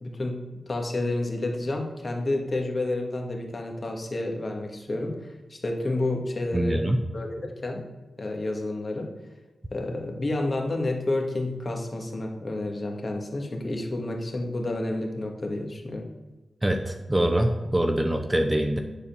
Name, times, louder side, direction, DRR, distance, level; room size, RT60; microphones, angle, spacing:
voice 1, 0.0-6.8 7.1-7.8 8.2-9.1 9.7-16.1, left 2 dB, 40° left, 2 dB, 1.7 m, -30 dB
voice 2, 6.5-7.0 16.6-18.8, right 1 dB, 15° right, 4 dB, 0.8 m, -24 dB
10.5 x 4.2 x 7.0 m, 1.2 s
wide cardioid pair, 105°, 0 cm